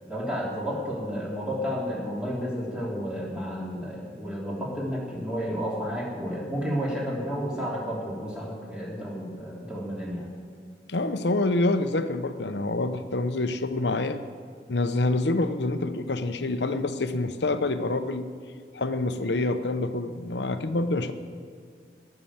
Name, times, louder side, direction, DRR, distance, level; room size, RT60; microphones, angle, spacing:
voice 1, 0.1-10.3, equal, 5° right, -4 dB, 3.0 m, -31 dB
voice 2, 10.9-14.2 14.7-18.3 18.7-21.1, left 2 dB, 85° left, 9 dB, 0.9 m, -26 dB
18.5 x 6.9 x 7.3 m, 2.1 s
head